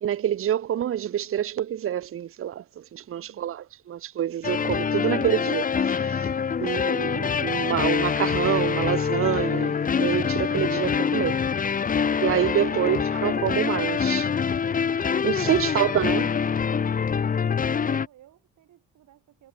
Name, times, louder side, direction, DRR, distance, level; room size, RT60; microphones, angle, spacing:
voice 1, 0.0-6.3 6.6-11.4 12.2-14.3 15.2-16.3, right 10 dB, 45° right, 0.7 m, -27 dB
voice 2, 3.1-3.6 17.5-19.5, right 13 dB, 80° right, 7.4 m, -58 dB
sound 1, 4.4-18.1, left 6 dB, 30° left, 0.6 m, -25 dB
cardioid pair, 90°, 30 cm